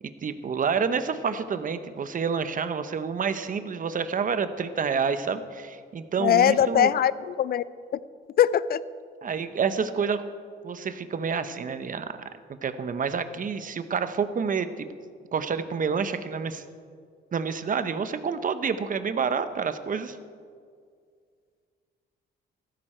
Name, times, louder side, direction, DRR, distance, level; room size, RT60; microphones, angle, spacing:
voice 1, 0.0-6.9 9.2-10.2 10.6-12.1 12.6-14.9 15.3-16.6 17.3-20.2, right 6 dB, 45° right, 11 dB, 0.9 m, -28 dB
voice 2, 6.2-7.6 8.4-8.8, left 10 dB, 50° left, 18 dB, 0.5 m, -21 dB
14.5 x 12.5 x 4.5 m, 2.1 s
cardioid pair, 90°, 20 cm